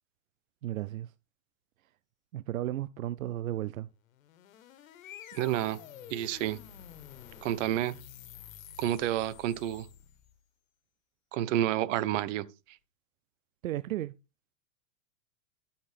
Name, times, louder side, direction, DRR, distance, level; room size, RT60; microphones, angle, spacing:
voice 1, 0.6-1.1 2.3-3.9 13.6-14.1, right 13 dB, 90° right, 0.6 m, -34 dB
sound 1, 4.1-10.4, left 9 dB, 80° left, 1.6 m, -49 dB
voice 2, 5.3-5.8 6.1-6.6 7.4-7.9 8.8-9.9 11.3-12.4, right 12 dB, 65° right, 1.2 m, -29 dB
13.0 x 7.2 x 3.5 m
hypercardioid pair, 110°, 40 cm